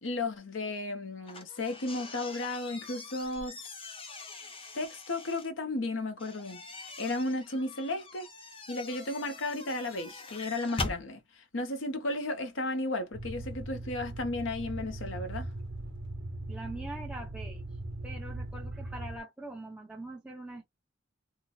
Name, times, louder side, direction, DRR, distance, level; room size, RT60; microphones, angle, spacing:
voice 1, 0.0-3.6 4.7-8.3 8.7-15.5, left 2 dB, 85° left, 0.9 m, -34 dB
sound 1, 1.2-5.5 6.2-11.0, left 3 dB, 30° left, 0.8 m, -42 dB
sound 2, 13.1-19.2, right 2 dB, 80° right, 1.0 m, -39 dB
voice 2, 16.5-17.6 18.0-20.7, right 2 dB, 5° right, 0.7 m, -43 dB
2.7 x 2.1 x 3.7 m
head